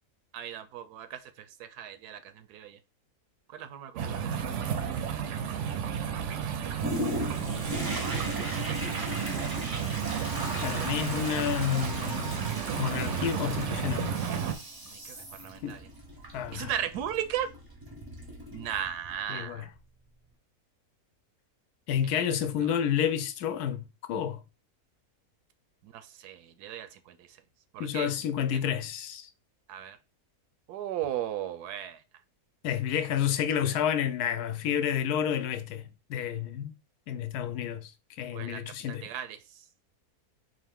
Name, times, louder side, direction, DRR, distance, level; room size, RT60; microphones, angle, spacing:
voice 1, 0.3-2.8 3.5-4.8 6.6-6.7 7.5-9.4 14.8-15.8 16.5-17.5 18.5-19.7 22.1-22.2 22.6-22.7 25.8-27.2 27.7-28.1 29.7-30.0 30.7-32.0 38.3-38.6 38.9-39.4, right 10 dB, 85° right, 1.1 m, -37 dB
sound 1, 4.0-14.5, right 8 dB, 65° right, 0.7 m, -32 dB
Toilet flush, 6.8-19.2 19.7-19.8, equal, 30° right, 0.4 m, -38 dB
voice 2, 10.6-12.5 12.8-14.2 15.6-15.8 16.3-16.7 19.3-19.7 21.9-24.4 27.8-29.3 32.6-35.8 36.1-36.7 37.1-37.9 38.2-39.0, left 9 dB, 80° left, 1.1 m, -30 dB
3.9 x 2.6 x 3.5 m
omnidirectional pair, 1.6 m